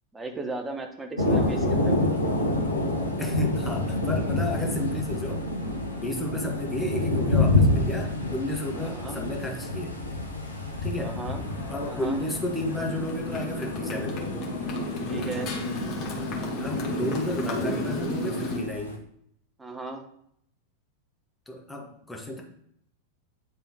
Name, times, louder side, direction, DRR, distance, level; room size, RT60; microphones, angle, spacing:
voice 1, 0.1-2.0 8.8-9.2 11.0-11.4 11.9-12.2 15.1-15.5 19.6-20.0, right 3 dB, 10° right, 4 dB, 0.9 m, -35 dB
Thunder, 1.2-19.0, left 2 dB, 85° left, 0.8 m, -28 dB
voice 2, 3.2-5.4 6.0-10.0 10.8-11.2 11.7-14.2 16.6-19.0 21.5-22.4, left 1 dB, 5° left, 0 dB, 1.1 m, -32 dB
Motorcycle, 11.4-18.6, left 1 dB, 35° left, 1.3 m, -32 dB
9.2 x 3.5 x 2.8 m, 0.70 s
figure-of-eight pair, 90°, 0 cm